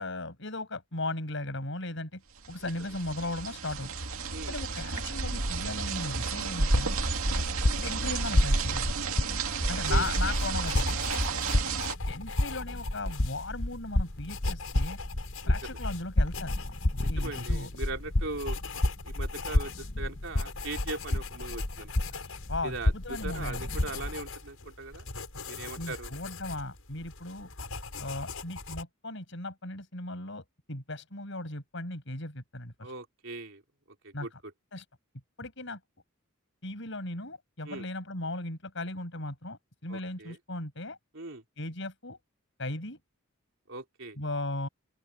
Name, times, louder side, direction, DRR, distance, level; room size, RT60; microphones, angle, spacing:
voice 1, 0.0-2.2 2.5-3.9 4.5-7.0 7.3-7.5 7.8-8.9 9.7-11.1 12.1-15.0 15.5-16.5 17.1-17.7 22.5-23.7 25.8-27.5 28.0-32.9 34.1-34.4 34.7-34.9 35.4-35.8 36.6-41.0 41.6-42.2 42.6-43.0 44.2-44.7, left 2 dB, 60° left, 7.7 m, -37 dB
sound 1, 2.4-11.9, right 3 dB, 85° right, 2.3 m, -31 dB
sound 2, 6.6-24.2, left 1 dB, 45° left, 1.1 m, -31 dB
voice 2, 9.6-10.0 15.4-15.5 17.0-18.6 19.0-21.9 22.6-25.1 25.5-26.1 32.8-33.6 34.0-34.3 37.7-37.9 39.9-40.4 41.1-41.4 43.7-44.2, right 2 dB, 65° right, 3.7 m, -40 dB
sound 3, 9.8-28.8, left 4 dB, 85° left, 6.9 m, -42 dB
open air
head